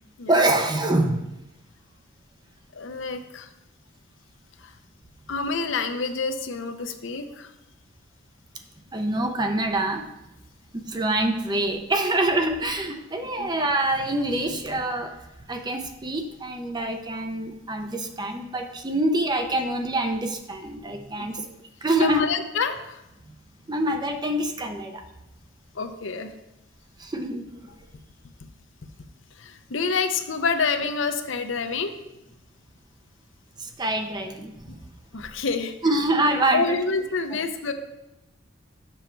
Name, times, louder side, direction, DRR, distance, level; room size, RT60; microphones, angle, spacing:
voice 1, 0.3-1.3 8.9-10.1 10.7-15.2 15.5-21.4 21.8-22.3 23.7-25.0 27.0-27.4 33.6-34.9 35.8-36.6, right 1 dB, 20° right, 5 dB, 0.6 m, -25 dB
voice 2, 2.7-3.5 4.6-4.7 5.3-7.5 13.4-13.5 21.2-21.5 22.0-23.0 25.7-26.3 29.4-31.9 35.1-35.8 36.5-37.7, left 4 dB, 65° left, 7 dB, 0.6 m, -28 dB
6.9 x 6.2 x 4.5 m, 0.94 s
head